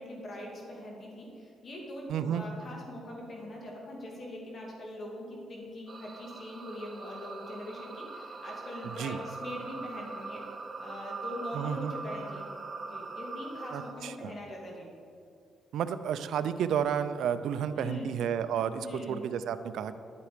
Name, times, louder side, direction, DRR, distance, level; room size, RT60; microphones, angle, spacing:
voice 1, 0.0-10.4 10.8-12.5 12.9-14.9 17.7-18.1 18.8-19.2, left 1 dB, 45° left, -2 dB, 2.2 m, -42 dB
voice 2, 2.1-2.4 8.8-9.2 11.5-11.9 13.7-14.3 15.7-19.9, right 8 dB, 80° right, 11 dB, 0.5 m, -31 dB
sound 1, 5.9-13.9, right 3 dB, 30° right, 0.9 m, -42 dB
11.0 x 9.6 x 5.0 m, 2.4 s
cardioid pair, 100°, 0 cm